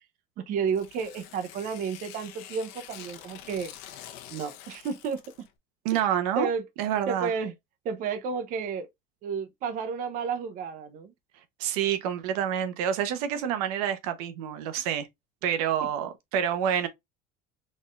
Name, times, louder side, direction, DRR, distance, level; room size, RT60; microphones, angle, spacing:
voice 1, 0.5-3.7 4.3-5.2 5.9-6.1 6.4-6.6 7.1-7.5 7.8-8.9 9.2-11.1, right 6 dB, 45° right, 0.8 m, -31 dB
Tearing, 0.7-5.5, left 11 dB, 70° left, 1.1 m, -46 dB
voice 2, 5.8-6.5 6.8-7.3 11.6-15.1 15.4-16.9, right 9 dB, 90° right, 1.1 m, -28 dB
4.3 x 3.7 x 2.5 m
cardioid pair, 150°, 19 cm